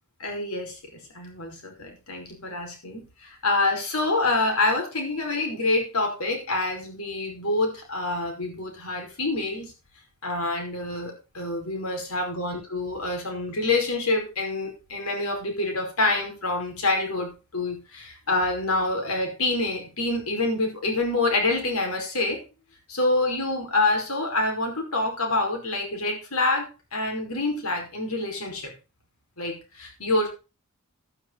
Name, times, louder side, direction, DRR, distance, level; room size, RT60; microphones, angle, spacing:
voice 1, 0.2-0.8 1.1-9.7 10.2-22.4 22.9-28.7 29.4-30.3, left 2 dB, 85° left, 3 dB, 5.2 m, -27 dB
12.0 x 10.0 x 4.0 m, 0.31 s
head